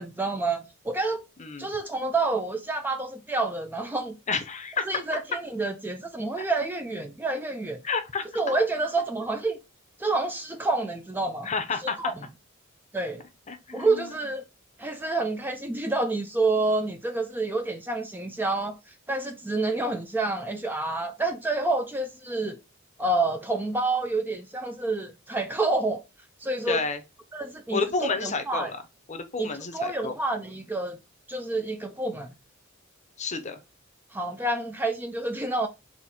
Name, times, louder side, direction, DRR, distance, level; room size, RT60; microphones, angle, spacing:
voice 1, 0.0-1.2 1.6-4.2 4.9-7.8 8.3-9.6 10.0-11.5 12.0-12.1 12.9-13.2 13.7-14.4 14.8-18.8 19.1-22.6 23.0-26.0 26.4-26.8 27.3-28.7 29.4-31.0 31.3-32.3 34.1-35.7, right 2 dB, 10° right, 0.4 m, -28 dB
voice 2, 4.3-4.8 6.4-6.5 7.8-8.2 11.4-12.0 13.5-14.2 26.7-27.0 27.7-28.8 29.1-30.1 33.2-33.6, left 4 dB, 35° left, 0.7 m, -30 dB
4.2 x 2.8 x 4.1 m
head